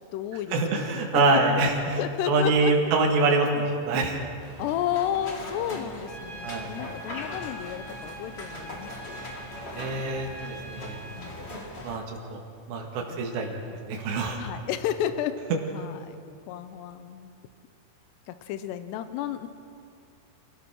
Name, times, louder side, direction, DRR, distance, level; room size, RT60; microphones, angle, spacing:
voice 1, 0.0-1.4 2.0-2.7 4.6-9.3 11.2-11.5 13.1-13.3 14.4-15.4 15.7-16.2 16.5-17.4 18.3-19.5, left 10 dB, 85° left, 10 dB, 3.0 m, -32 dB
voice 2, 0.5-2.0 2.3-4.2 6.4-6.7 9.7-11.0 11.8-12.4 12.7-13.6 13.9-14.4, right 3 dB, 90° right, 1 dB, 4.2 m, -25 dB
sound 1, 4.4-12.0, left 1 dB, 40° left, 0.9 m, -40 dB
Trumpet, 6.1-11.3, right 1 dB, 20° left, 4.2 m, -43 dB
28.0 x 16.0 x 6.3 m, 2.3 s
omnidirectional pair, 4.8 m